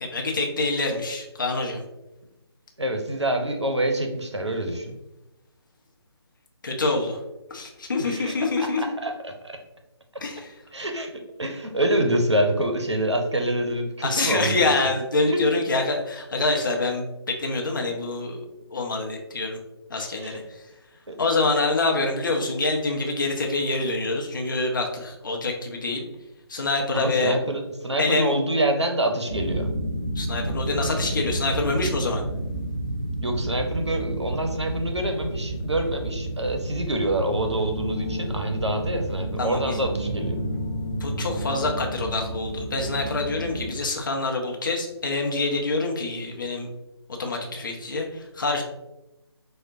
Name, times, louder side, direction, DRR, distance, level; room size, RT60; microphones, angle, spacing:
voice 1, 0.0-1.8 6.6-7.2 7.5-8.8 10.2-10.5 14.0-18.4 18.7-19.6 19.9-20.4 21.2-26.0 26.5-27.4 28.0-28.3 30.2-32.2 39.4-39.7 41.0-46.7 47.2-48.6, left 3 dB, 50° left, 1 dB, 0.6 m, -26 dB
voice 2, 2.8-5.0 8.0-9.6 10.7-14.7 15.3-15.4 20.2-20.4 21.1-21.2 26.9-29.7 33.2-40.4, right 1 dB, 85° right, 4 dB, 0.6 m, -26 dB
sound 1, 29.3-43.7, right 1 dB, 20° right, 1.5 m, -30 dB
4.4 x 2.1 x 2.5 m, 0.96 s
figure-of-eight pair, 150°, 14 cm